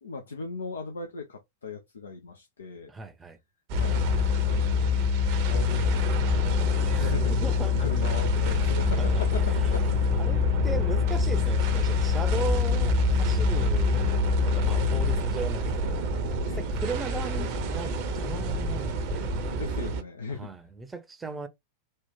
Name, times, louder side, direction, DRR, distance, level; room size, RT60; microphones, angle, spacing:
voice 1, 0.0-2.9 3.7-4.1 4.4-4.8 5.1-7.3 7.8-9.8 10.1-10.5 16.5-16.7 19.4-20.5, left 4 dB, 70° left, 0.7 m, -38 dB
voice 2, 2.9-3.4 6.9-7.9 8.9-9.1 9.4-9.6 10.2-14.1 14.4-16.0 16.5-19.5 20.3-21.5, right 3 dB, 10° right, 0.8 m, -37 dB
sound 1, 3.7-15.2, left 10 dB, 30° left, 0.6 m, -26 dB
sound 2, 3.7-20.0, right 3 dB, 45° right, 1.0 m, -29 dB
4.3 x 2.4 x 3.6 m
figure-of-eight pair, 90°, 0 cm